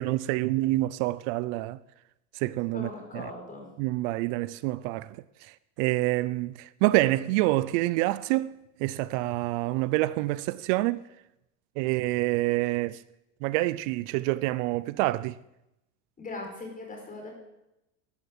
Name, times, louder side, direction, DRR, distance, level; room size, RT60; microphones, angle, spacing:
voice 1, 0.0-1.8 2.4-3.3 3.8-5.1 5.8-11.0 11.8-13.0 13.4-15.3, right 18 dB, 70° right, 0.6 m, -27 dB
voice 2, 2.7-3.7 16.2-17.3, left 3 dB, 20° left, 5.1 m, -39 dB
13.0 x 11.5 x 8.2 m
cardioid pair, 150°, 41 cm